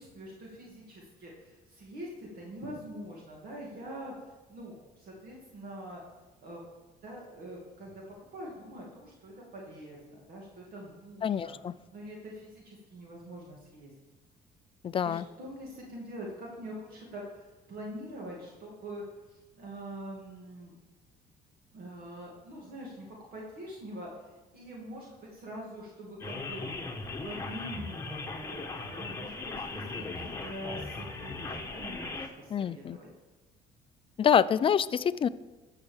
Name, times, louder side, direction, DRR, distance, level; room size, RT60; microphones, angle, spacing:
voice 1, 0.0-6.0 6.4-6.6 7.0-11.5 11.9-13.9 15.0-20.8 21.7-26.6 27.2-33.1, equal, 60° right, -3 dB, 2.6 m, -44 dB
voice 2, 11.2-11.7 14.8-15.2 32.5-33.0 34.2-35.3, left 8 dB, 30° left, 16 dB, 0.4 m, -26 dB
sound 1, 26.2-32.3, left 3 dB, 15° left, 1.2 m, -38 dB
14.0 x 5.8 x 7.2 m, 1.2 s
cardioid pair, 110°, 17 cm